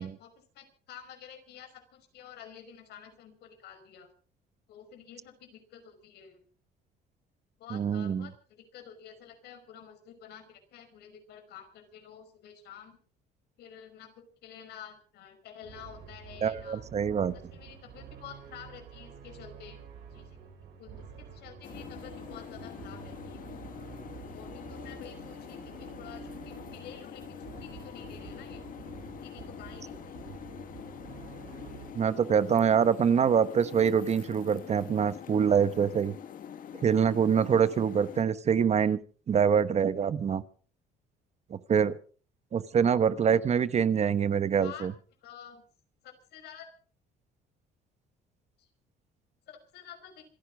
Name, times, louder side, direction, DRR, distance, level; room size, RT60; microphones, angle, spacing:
voice 1, 0.0-4.1 4.7-6.4 7.6-13.0 13.6-16.8 17.3-19.8 20.1-23.4 24.3-28.6 29.2-30.2 44.6-44.9 45.2-45.6 46.0-46.7 48.6-48.7 49.5-50.2, left 8 dB, 75° left, 6 dB, 5.4 m, -50 dB
voice 2, 7.7-8.3 16.4-17.3 31.9-36.2 36.8-39.0 39.3-40.4 41.5-42.0 42.5-44.9, right 7 dB, 40° right, 14 dB, 1.1 m, -25 dB
sound 1, 15.6-31.9, right 7 dB, 85° right, 7.8 m, -48 dB
sound 2, 21.6-38.2, left 9 dB, 55° left, 1.7 m, -45 dB
27.0 x 10.0 x 5.0 m, 0.42 s
cardioid pair, 110°, 17 cm